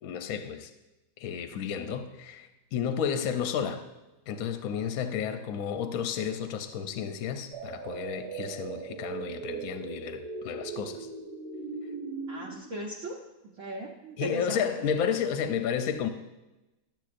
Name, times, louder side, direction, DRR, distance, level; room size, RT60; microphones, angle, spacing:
voice 1, 0.0-0.7 1.2-3.8 4.3-11.1 14.2-16.1, left 7 dB, 65° left, 8 dB, 1.0 m, -32 dB
sound 1, 7.5-12.6, right 5 dB, 75° right, 1.8 m, -39 dB
voice 2, 12.3-13.2 13.4-14.8, right 1 dB, 55° right, -4 dB, 1.1 m, -38 dB
11.5 x 7.5 x 2.5 m, 1.0 s
omnidirectional pair, 1.8 m